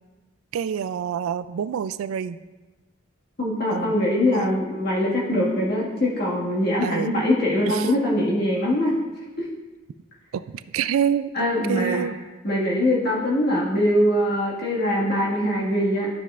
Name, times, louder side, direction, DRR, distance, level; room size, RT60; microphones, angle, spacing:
voice 1, 0.5-2.4 3.7-4.0 4.2-4.6 6.8-7.1 7.7-7.9 10.3-12.1, right 8 dB, 85° right, 14 dB, 0.3 m, -27 dB
voice 2, 3.4-9.0 9.4-9.5 11.3-12.1 12.4-16.1, left 1 dB, 50° left, -5 dB, 1.7 m, -22 dB
11.5 x 5.7 x 2.4 m, 1.2 s
head